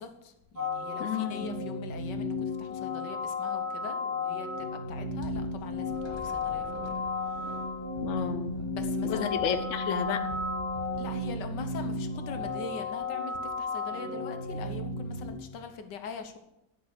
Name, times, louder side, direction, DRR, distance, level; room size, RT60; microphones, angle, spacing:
voice 1, 0.0-6.7 7.3-7.6 8.8-9.4 11.0-16.4, left 5 dB, 80° left, 7 dB, 1.6 m, -43 dB
sound 1, 0.6-15.3, left 3 dB, 60° right, 3.2 m, -34 dB
voice 2, 1.0-1.5 8.0-8.6 9.0-10.2, left 7 dB, 55° left, 8 dB, 0.9 m, -31 dB
sound 2, 5.2-12.5, right 2 dB, 15° left, 1.7 m, -41 dB
10.5 x 5.6 x 6.7 m, 0.89 s
omnidirectional pair, 1.8 m